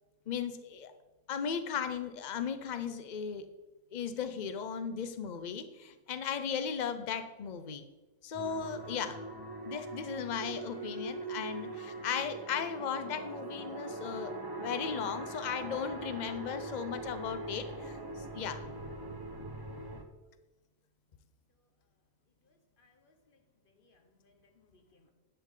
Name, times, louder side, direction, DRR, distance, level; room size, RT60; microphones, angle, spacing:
voice 1, 0.3-0.9 1.3-3.5 3.9-7.8 8.2-9.2 9.6-14.3 14.6-18.6, left 7 dB, 75° left, 0.4 m, -36 dB
sound 1, 8.3-20.0, right 2 dB, 25° right, 0.5 m, -42 dB
voice 2, 22.4-25.1, left 3 dB, 40° left, 1.2 m, -68 dB
10.5 x 8.2 x 3.7 m
omnidirectional pair, 1.6 m